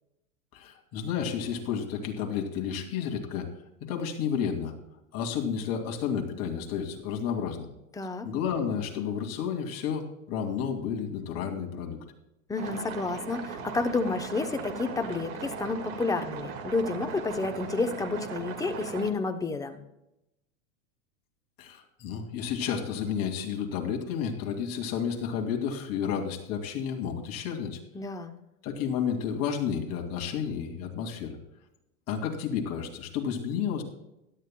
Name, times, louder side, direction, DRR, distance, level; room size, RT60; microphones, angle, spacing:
voice 1, 0.5-3.5 3.8-4.7 5.1-7.7 8.2-12.0 21.6-27.8 28.6-31.4 32.1-33.8, left 7 dB, 35° left, 2 dB, 2.5 m, -31 dB
voice 2, 8.0-8.3 12.5-19.8 27.9-28.3, left 3 dB, 10° left, 6 dB, 0.8 m, -30 dB
sound 1, 12.6-19.1, right 5 dB, 45° right, 1.9 m, -38 dB
16.5 x 12.0 x 2.3 m, 0.88 s
hypercardioid pair, 130°, 41 cm